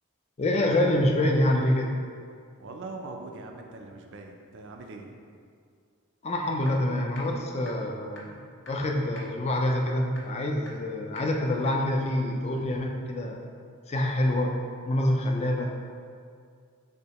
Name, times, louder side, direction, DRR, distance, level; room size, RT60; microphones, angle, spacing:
voice 1, 0.4-1.9 6.2-8.4 8.7-13.4 13.9-14.6 14.9-15.7, left 1 dB, 30° left, 1 dB, 0.4 m, -26 dB
voice 2, 2.6-5.1, right 3 dB, 55° right, 3 dB, 0.5 m, -41 dB
sound 1, 6.7-6.8 7.2-7.3 7.7-7.8 8.2-8.3 8.7-8.8 9.2-9.3 9.7-9.8 10.2-10.3 10.7-10.8 11.2-11.3 11.7-11.8, left 2 dB, 55° left, 0.7 m, -45 dB
6.2 x 2.7 x 3.0 m, 2.2 s
head